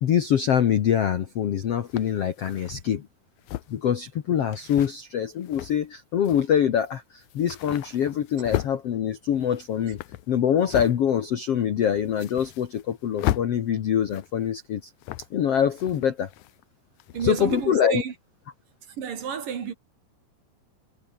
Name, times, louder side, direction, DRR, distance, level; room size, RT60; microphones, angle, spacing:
voice 1, 0.0-3.1 3.7-10.0 10.3-14.9 15.3-16.3 17.2-18.0, left 9 dB, 60° left, 1.6 m, -24 dB
sound 1, 1.0-1.1 1.9-2.7 3.4-3.9 4.5-4.9 5.4-5.9 6.2-6.5 6.8-6.9 7.2-8.7 9.3-11.0 11.4-11.5 11.9-12.9 13.2-13.5 14.0-14.5 15.0-15.4 15.7-16.6 17.0-17.6, left 15 dB, 85° left, 1.6 m, -35 dB
voice 2, 17.1-18.1 18.9-19.7, right 7 dB, 60° right, 4.2 m, -31 dB
omnidirectional pair, 4.6 m